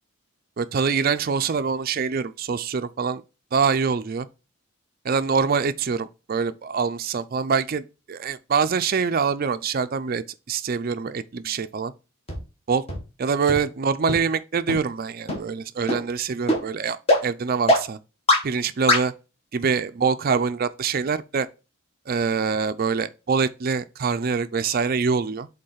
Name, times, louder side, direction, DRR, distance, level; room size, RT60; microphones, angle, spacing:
voice 1, 0.6-3.2 3.5-4.3 5.0-11.9 12.7-12.8 13.2-18.0 18.4-19.1 19.5-21.5 22.1-25.5, right 5 dB, 45° right, 0.4 m, -24 dB
sound 1, 12.3-12.4 12.9-13.0 13.5-13.6 14.1-14.2 14.7-14.8 15.3-15.4 15.9-16.0 16.5-16.6 17.1-17.2 17.7-17.8 18.3-18.4 18.9-19.0, left 1 dB, 30° left, 1.7 m, -19 dB
5.4 x 3.9 x 5.5 m
head